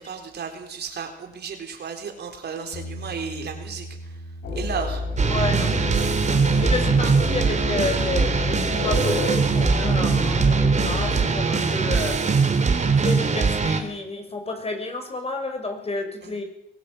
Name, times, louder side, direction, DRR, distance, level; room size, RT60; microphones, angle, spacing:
voice 1, 0.0-4.2 4.5-5.0 16.2-16.3, right 6 dB, 55° right, 4 dB, 4.0 m, -34 dB
Bass guitar, 2.7-9.0, equal, 60° left, 7.4 m, -42 dB
sound 1, 4.4-11.3, left 3 dB, 80° left, 5.1 m, -29 dB
sound 2, 5.2-13.8, right 5 dB, 35° right, 3.6 m, -21 dB
voice 2, 5.3-5.7 6.6-12.2 13.0-16.4, left 3 dB, 30° left, 5 dB, 6.1 m, -30 dB
23.5 x 16.5 x 7.9 m, 0.79 s
cardioid pair, 90°, 20 cm